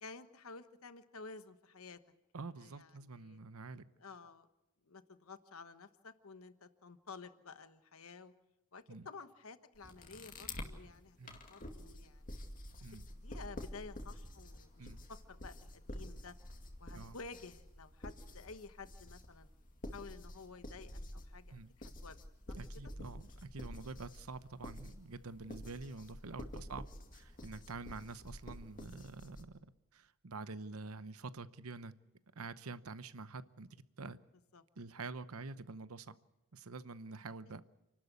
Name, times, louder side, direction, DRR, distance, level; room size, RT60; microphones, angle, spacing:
voice 1, 0.0-2.0 2.6-3.4 4.0-4.5 4.8-8.3 8.7-11.2 11.4-12.4 13.2-16.3 16.8-19.5 19.9-22.2 22.5-22.9 23.8-24.0 34.5-34.6, left 4 dB, 70° left, 11 dB, 1.2 m, -52 dB
voice 2, 2.3-3.8 8.9-9.1 11.2-11.4 12.8-13.0 14.8-15.0 16.9-17.2 21.5-21.7 22.6-26.8 27.1-31.9 32.3-34.2 34.8-36.1 36.5-37.6, right 3 dB, 75° right, 14 dB, 0.9 m, -47 dB
sound 1, 9.7-10.7 11.3-29.4, left 1 dB, 40° left, 2.3 m, -49 dB
29.0 x 12.5 x 8.2 m, 0.96 s
head